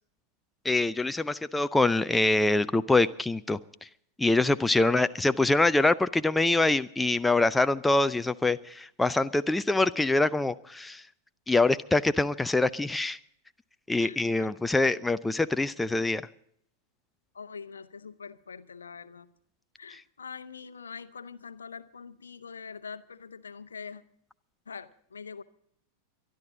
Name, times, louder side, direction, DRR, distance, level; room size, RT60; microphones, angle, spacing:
voice 1, 0.6-3.9 4.2-11.1 11.5-13.2 13.9-16.2 19.9-20.0, left 2 dB, 5° left, 0.5 m, -25 dB
voice 2, 4.8-5.1 14.0-14.5 17.3-19.3 19.8-24.0 24.7-25.4, left 5 dB, 70° left, 0.9 m, -44 dB
23.5 x 11.5 x 3.8 m
figure-of-eight pair, 90°, 0 cm